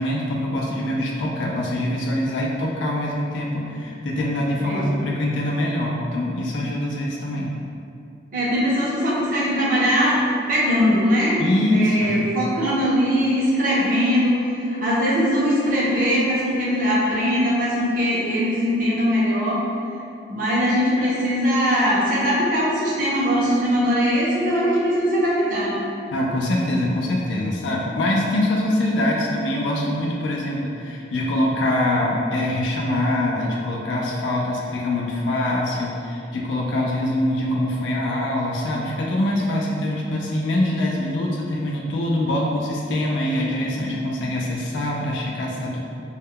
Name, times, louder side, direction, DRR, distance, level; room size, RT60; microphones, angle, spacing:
voice 1, 0.0-7.5 11.4-12.3 26.1-45.8, left 1 dB, 85° left, -3 dB, 0.3 m, -24 dB
voice 2, 4.6-5.0 8.3-10.2 10.5-11.4 11.7-19.6 20.3-25.7, equal, 45° right, -7 dB, 0.5 m, -21 dB
2.2 x 2.0 x 3.5 m, 2.6 s
head